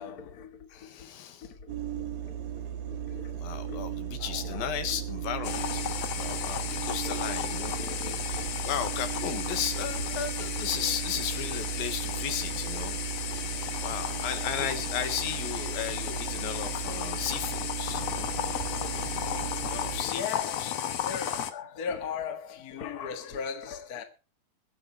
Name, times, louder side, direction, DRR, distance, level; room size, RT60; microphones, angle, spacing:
voice 1, 0.0-1.1 1.5-2.4 2.9-3.4 3.7-3.8 4.2-4.9 6.7-8.5 17.1-17.2 18.7-18.9 19.9-20.6 21.0-24.0, left 6 dB, 40° left, 1.3 m, -39 dB
voice 2, 0.7-1.5 3.4-5.9 6.2-13.0 13.8-18.3 19.7-20.7, left 9 dB, 85° left, 3.3 m, -35 dB
sound 1, 1.7-20.0, right 10 dB, 80° right, 3.2 m, -36 dB
sound 2, 5.4-21.5, left 10 dB, 65° left, 1.7 m, -34 dB
22.5 x 7.6 x 4.5 m
omnidirectional pair, 4.1 m